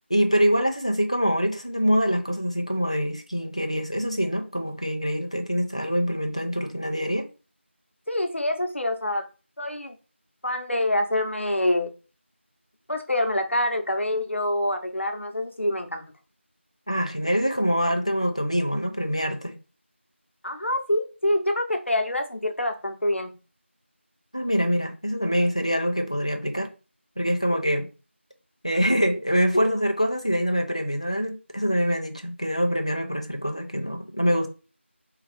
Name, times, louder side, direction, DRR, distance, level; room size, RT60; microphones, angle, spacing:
voice 1, 0.1-7.3 16.9-19.6 24.3-26.7 27.2-27.9 28.6-34.5, equal, 30° left, 0.4 m, -25 dB
voice 2, 8.1-9.3 9.6-10.0 10.4-11.9 12.9-16.0 20.4-23.3 29.5-29.7, left 1 dB, 70° left, 0.8 m, -26 dB
3.6 x 2.4 x 3.3 m
figure-of-eight pair, 180°, 7 cm